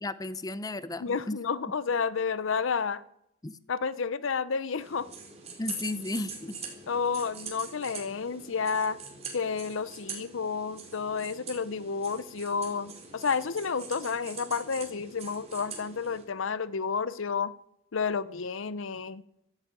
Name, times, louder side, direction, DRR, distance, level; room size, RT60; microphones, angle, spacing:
voice 1, 0.0-1.4 3.4-3.6 5.6-6.6, left 2 dB, 20° left, 14 dB, 0.6 m, -34 dB
voice 2, 1.0-3.0 3.7-5.1 6.9-9.0 9.3-17.5 17.9-19.2, left 5 dB, 65° left, 17 dB, 0.6 m, -31 dB
sound 1, 4.8-16.2, right 5 dB, 30° right, 4.1 m, -44 dB
14.0 x 10.0 x 8.8 m, 0.78 s
head